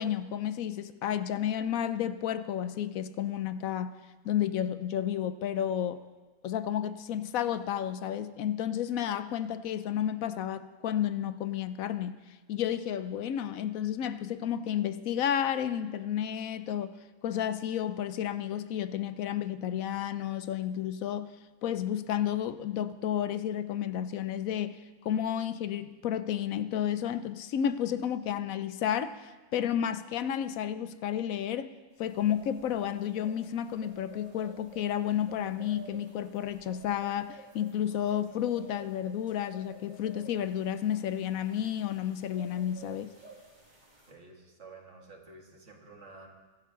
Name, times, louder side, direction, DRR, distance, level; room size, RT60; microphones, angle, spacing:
voice 1, 0.0-3.9 4.2-6.0 6.4-12.1 12.5-16.9 17.2-21.3 21.6-31.7 32.0-43.1, left 10 dB, 70° left, 12 dB, 1.0 m, -31 dB
sound 1, 32.0-44.1, right 2 dB, 30° right, 2.8 m, -52 dB
voice 2, 44.1-46.3, right 3 dB, 50° right, 1 dB, 2.2 m, -51 dB
23.5 x 11.0 x 3.8 m, 1.3 s
omnidirectional pair, 1.6 m